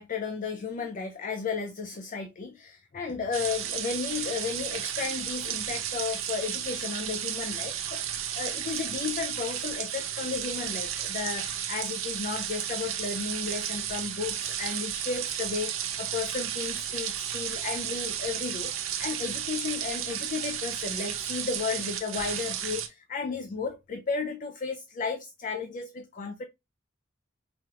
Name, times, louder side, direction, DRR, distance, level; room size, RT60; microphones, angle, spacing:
voice 1, 0.0-26.4, left 5 dB, 40° left, 0.4 m, -34 dB
sound 1, 3.3-22.9, right 9 dB, 75° right, 0.7 m, -33 dB
5.0 x 2.4 x 2.8 m
head